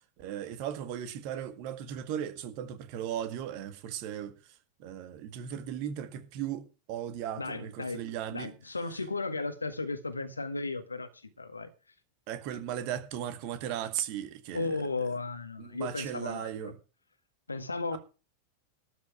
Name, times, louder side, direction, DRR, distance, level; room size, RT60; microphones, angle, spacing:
voice 1, 0.0-4.3 4.8-8.5 12.3-14.8 15.6-16.7 17.9-18.0, right 10 dB, 45° right, 1.8 m, -37 dB
voice 2, 7.4-11.7 14.5-16.7 17.5-18.0, left 3 dB, 80° left, 1.7 m, -35 dB
12.5 x 5.5 x 9.0 m
figure-of-eight pair, 90°, 0 cm